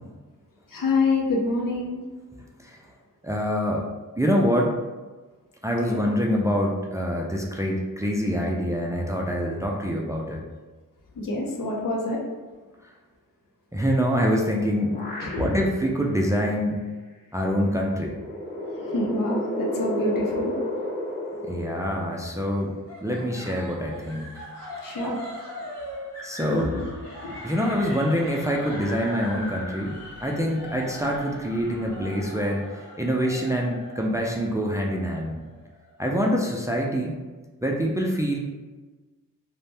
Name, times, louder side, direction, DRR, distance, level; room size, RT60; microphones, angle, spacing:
voice 1, 0.7-2.0 5.8-6.0 11.2-12.2 15.2-15.5 18.8-20.5 24.8-25.2 26.5-26.9 27.2-27.4, left 2 dB, 75° left, -1 dB, 0.7 m, -26 dB
voice 2, 3.2-3.9 4.2-4.8 5.6-10.4 13.7-15.0 15.4-16.8 17.3-18.2 21.5-22.8 23.0-24.4 26.2-26.8 27.4-35.4 36.0-37.2 37.6-38.4, equal, 10° right, -1 dB, 0.3 m, -25 dB
sound 1, 14.7-15.9 16.4-16.5 17.7-22.5, left 1 dB, 25° left, 1.2 m, -32 dB
sound 2, 22.9-36.0, left 1 dB, 5° left, 1.1 m, -41 dB
sound 3, 27.0-32.3, equal, 60° left, 1.2 m, -46 dB
2.6 x 2.1 x 3.2 m, 1.3 s
wide cardioid pair, 70°, 34 cm